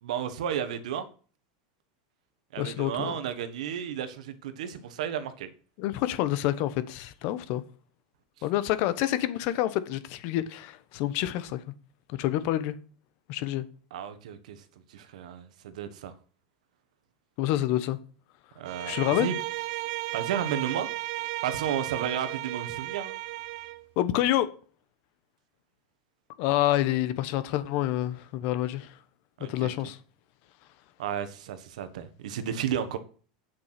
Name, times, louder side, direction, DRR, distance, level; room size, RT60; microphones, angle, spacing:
voice 1, 0.0-1.1 2.5-5.5 13.9-14.6 14.9-16.1 18.6-19.4 20.1-20.9 21.4-23.1 29.4-29.7 31.0-33.0, right 9 dB, 80° right, 1.5 m, -33 dB
voice 2, 2.6-3.2 5.8-7.6 8.4-11.6 12.1-12.7 13.3-13.6 17.4-18.0 18.8-19.3 24.0-24.5 26.4-28.9 29.4-30.0, left 13 dB, 55° left, 1.1 m, -27 dB
Bowed string instrument, 18.6-23.8, right 17 dB, 60° right, 0.9 m, -34 dB
8.4 x 6.7 x 5.9 m
supercardioid pair, 130°, 4 cm